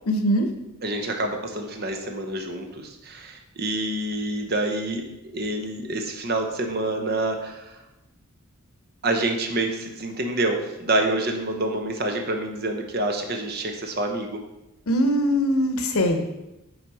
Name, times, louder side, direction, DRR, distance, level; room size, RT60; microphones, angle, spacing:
voice 1, 0.1-0.5 14.9-16.3, equal, 80° left, 6 dB, 0.8 m, -21 dB
voice 2, 0.8-7.8 9.0-14.4, right 2 dB, 45° right, 4 dB, 0.8 m, -27 dB
6.1 x 4.1 x 4.7 m, 0.94 s
head